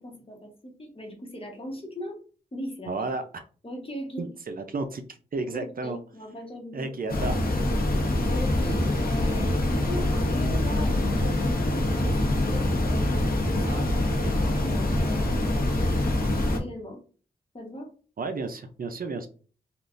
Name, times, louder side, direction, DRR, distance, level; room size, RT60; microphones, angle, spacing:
voice 1, 0.0-2.2 2.5-3.1 3.6-4.3 5.5-7.1 8.2-15.6 16.5-17.0 17.5-17.9, left 1 dB, 35° left, 0 dB, 1.1 m, -39 dB
voice 2, 2.9-3.4 4.2-5.0 5.3-6.0 6.7-7.4 13.6-13.9 14.2-14.3 18.2-19.3, right 3 dB, 60° right, 7 dB, 0.5 m, -32 dB
sound 1, 7.1-16.6, left 1 dB, 60° left, 0.9 m, -25 dB
3.5 x 2.4 x 2.5 m, 0.39 s
cardioid pair, 60°, 17 cm